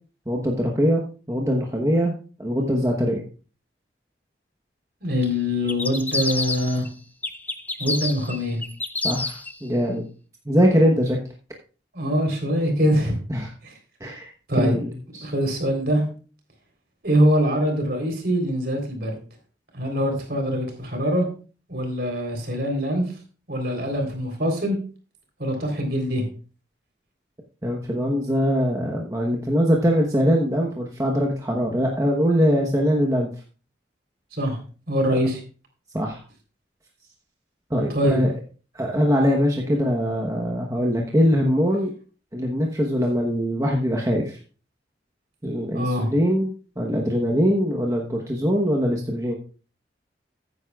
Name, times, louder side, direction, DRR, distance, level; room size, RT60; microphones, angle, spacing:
voice 1, 0.3-3.2 9.0-10.1 10.5-11.2 13.3-13.5 14.0-14.3 14.6-15.3 27.6-33.3 35.9-36.2 37.7-38.3 38.7-41.9 42.3-44.4 45.4-46.5 46.8-49.4, equal, 15° right, 0 dB, 1.0 m, -22 dB
voice 2, 5.0-6.9 7.8-8.6 11.9-13.2 13.6-13.7 14.5-14.8 15.2-16.0 17.0-19.2 19.7-21.3 21.7-23.0 23.5-24.8 25.4-26.2 34.3-34.6 34.9-35.4 37.9-38.2 45.7-46.1, equal, 55° right, 3 dB, 3.7 m, -23 dB
sound 1, 5.7-6.9 7.2-9.5, left 3 dB, 10° left, 0.6 m, -28 dB
15.0 x 9.4 x 2.4 m, 0.37 s
head